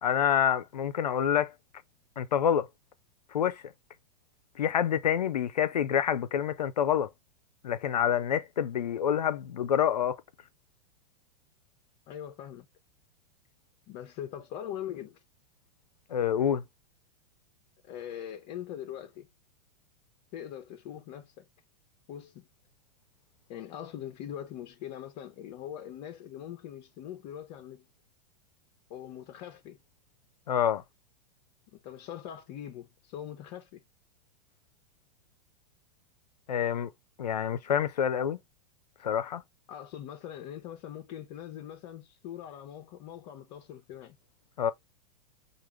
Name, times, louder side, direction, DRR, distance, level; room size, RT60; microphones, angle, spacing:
voice 1, 0.0-1.5 2.2-2.7 3.3-3.7 4.6-7.1 7.6-10.2 16.1-16.6 30.5-30.8 36.5-36.9 37.2-38.4 39.0-39.4 44.6-44.7, left 9 dB, 80° left, 0.6 m, -27 dB
voice 2, 12.1-12.7 13.9-15.2 17.8-19.3 20.3-21.5 22.1-22.5 23.5-27.8 28.9-29.8 31.7-33.8 39.7-44.2, left 10 dB, 45° left, 0.8 m, -42 dB
4.7 x 2.5 x 3.1 m
hypercardioid pair, 100°, 21 cm